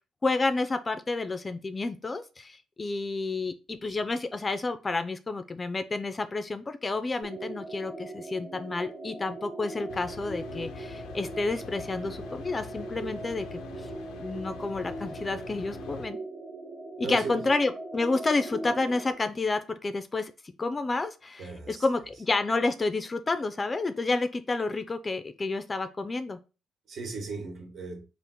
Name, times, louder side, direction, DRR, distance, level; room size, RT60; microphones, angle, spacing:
voice 1, 0.2-13.6 14.2-16.2 17.0-26.4, left 3 dB, 30° left, 0.4 m, -30 dB
sound 1, 7.2-19.1, right 2 dB, 75° right, 1.4 m, -40 dB
sound 2, 9.9-16.1, left 7 dB, 85° left, 0.4 m, -45 dB
voice 2, 17.0-17.4 21.4-21.8 26.9-28.0, right 4 dB, 60° right, 1.2 m, -37 dB
3.6 x 2.5 x 4.0 m
cardioid pair, 90°, 0 cm